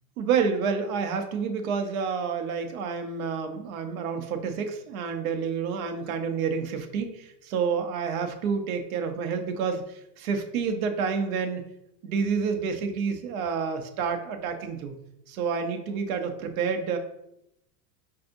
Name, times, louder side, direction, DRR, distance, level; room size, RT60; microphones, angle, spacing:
voice 1, 0.2-11.6 12.0-15.0 15.3-17.0, right 6 dB, 65° right, 7 dB, 0.7 m, -29 dB
4.6 x 2.7 x 2.6 m, 0.81 s
supercardioid pair, 165°, 46 cm